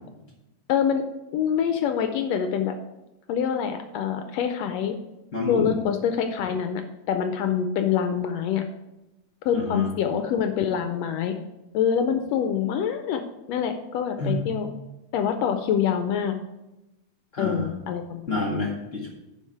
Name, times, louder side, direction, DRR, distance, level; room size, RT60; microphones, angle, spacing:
voice 1, 0.7-1.0 1.3-2.7 3.3-4.9 5.5-6.8 7.1-8.6 9.4-11.3 11.7-13.2 13.5-14.7 15.1-16.3 17.4-18.3, left 8 dB, 80° left, 7 dB, 1.5 m, -25 dB
voice 2, 5.3-5.8 9.5-9.9 14.2-14.4 17.3-17.7 18.3-19.1, left 2 dB, 45° left, -1 dB, 1.0 m, -28 dB
10.0 x 5.5 x 4.7 m, 0.97 s
omnidirectional pair, 3.5 m